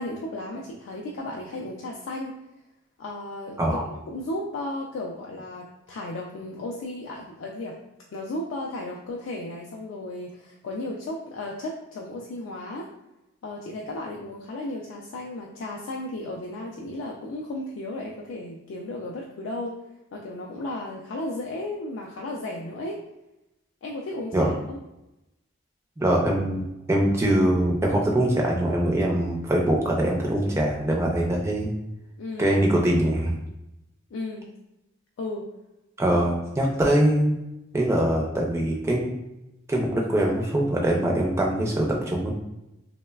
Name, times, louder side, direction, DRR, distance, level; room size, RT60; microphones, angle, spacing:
voice 1, 0.0-2.4 3.0-7.8 8.1-12.9 13.4-19.7 20.1-23.0 23.8-24.8 32.2-32.6 34.1-34.5 35.2-35.5 36.1-36.2, left 1 dB, 65° left, -1 dB, 0.3 m, -34 dB
voice 2, 26.0-31.7 32.4-33.4 36.0-37.4 37.7-39.1 39.7-42.3, right 1 dB, 15° right, -1 dB, 0.3 m, -23 dB
3.1 x 2.0 x 2.2 m, 0.92 s
head